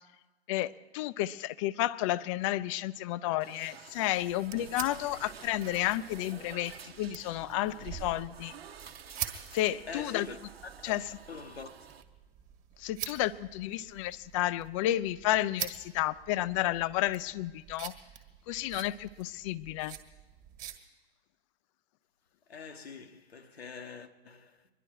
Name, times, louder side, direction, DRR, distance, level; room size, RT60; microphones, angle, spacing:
voice 1, 0.5-8.5 9.5-10.3 10.8-11.1 12.8-17.9 18.5-20.0, left 14 dB, 35° left, 0.4 m, -31 dB
sound 1, 3.4-12.0, right 7 dB, 75° right, 1.0 m, -50 dB
sound 2, 4.1-20.8, right 11 dB, 30° right, 1.6 m, -46 dB
voice 2, 9.9-10.4 10.6-10.9 11.3-11.9 22.5-24.7, left 5 dB, 80° left, 1.2 m, -44 dB
23.5 x 11.0 x 4.7 m
figure-of-eight pair, 110°, 30 cm